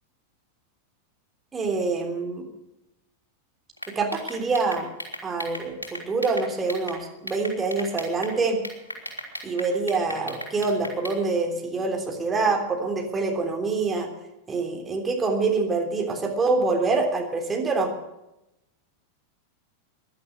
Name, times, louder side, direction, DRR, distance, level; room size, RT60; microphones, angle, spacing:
voice 1, 1.5-2.5 4.0-4.9 5.2-8.6 9.4-14.1 14.5-17.9, right 3 dB, 15° right, 2 dB, 3.3 m, -25 dB
sound 1, 3.8-7.0 7.3-8.3 8.6-11.2, equal, 80° left, 3.4 m, -36 dB
16.0 x 11.5 x 6.6 m, 0.89 s
figure-of-eight pair, 90°, 0 cm